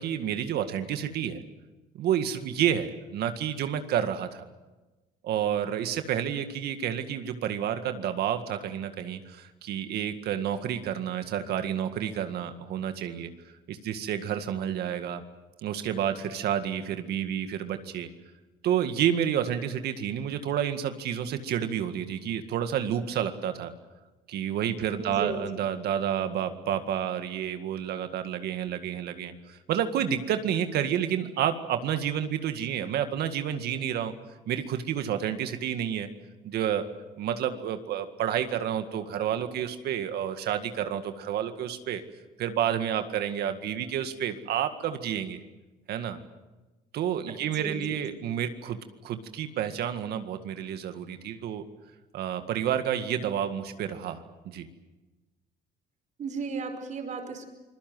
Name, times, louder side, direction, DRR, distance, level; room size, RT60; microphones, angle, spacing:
voice 1, 0.0-1.4 1.9-4.5 5.2-13.3 13.7-15.2 15.6-18.1 18.6-23.7 24.3-34.1 34.5-36.1 36.4-36.8 37.2-42.0 42.4-45.4 45.9-46.2 46.9-48.8 49.0-51.6 52.1-54.7, right 9 dB, 70° right, 8 dB, 2.0 m, -30 dB
voice 2, 25.0-25.7 47.3-48.0 56.2-57.5, right 4 dB, 45° right, 5 dB, 5.1 m, -35 dB
26.5 x 22.0 x 7.8 m, 1.1 s
cardioid pair, 110°, 17 cm